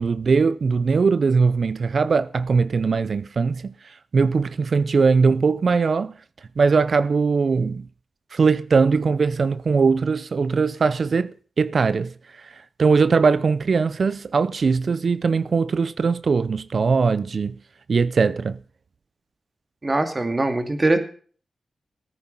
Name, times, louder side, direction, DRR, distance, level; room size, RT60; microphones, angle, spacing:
voice 1, 0.0-3.7 4.1-6.1 6.6-7.8 8.3-12.1 12.8-17.6 17.9-18.6, right 5 dB, 60° right, 0.6 m, -20 dB
voice 2, 19.8-21.0, right 2 dB, 35° right, 2.5 m, -21 dB
14.0 x 9.6 x 5.6 m
cardioid pair, 55°, 0 cm